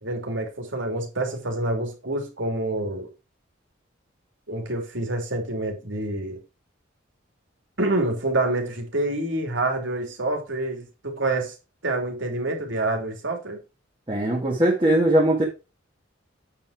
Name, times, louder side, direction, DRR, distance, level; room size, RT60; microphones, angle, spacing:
voice 1, 0.0-3.1 4.5-6.4 7.8-11.5 11.8-13.6, right 2 dB, 75° right, 3.0 m, -27 dB
voice 2, 14.1-15.4, right 1 dB, 25° right, 1.8 m, -20 dB
8.6 x 5.5 x 4.9 m
head